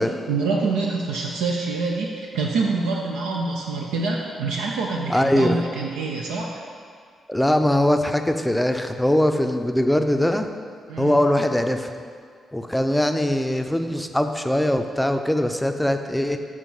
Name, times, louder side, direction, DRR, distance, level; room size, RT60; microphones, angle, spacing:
voice 1, 0.3-6.6 10.9-11.2, right 3 dB, 80° right, -1 dB, 0.4 m, -26 dB
voice 2, 5.1-5.6 7.3-10.5 11.0-11.9 12.5-16.4, left 1 dB, 5° left, 6 dB, 0.5 m, -21 dB
6.4 x 3.1 x 5.3 m, 2.1 s
hypercardioid pair, 45°, 0 cm